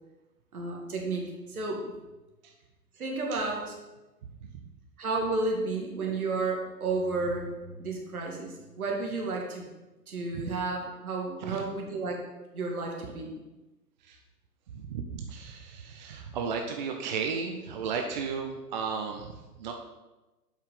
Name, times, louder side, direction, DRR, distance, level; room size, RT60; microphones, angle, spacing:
voice 1, 0.5-1.9 3.0-3.8 5.0-9.7 10.1-12.2 12.5-13.3, right 3 dB, 60° right, 0 dB, 2.4 m, -32 dB
voice 2, 14.7-19.7, right 5 dB, 30° right, 3 dB, 0.6 m, -34 dB
7.9 x 5.7 x 5.8 m, 1.1 s
figure-of-eight pair, 115°, 48 cm